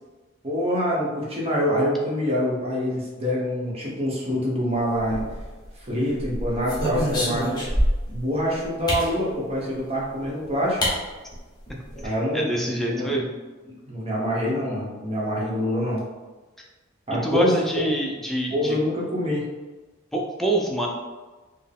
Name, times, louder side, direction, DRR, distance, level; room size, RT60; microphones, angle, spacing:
voice 1, 0.4-5.2 5.8-7.6 8.1-10.8 12.0-13.1 13.7-16.0 17.1-17.9 18.5-19.4, equal, 30° right, -4 dB, 0.9 m, -25 dB
sound 1, 5.0-5.7 6.2-8.2 8.9-9.1 10.2-10.3 10.8-11.0 11.3-11.4 11.7-12.1, equal, 20° left, 1.0 m, -26 dB
voice 2, 12.0-13.3 17.2-18.8 20.1-20.9, right 1 dB, ahead, -2 dB, 0.4 m, -26 dB
4.4 x 2.1 x 3.5 m, 1.3 s
head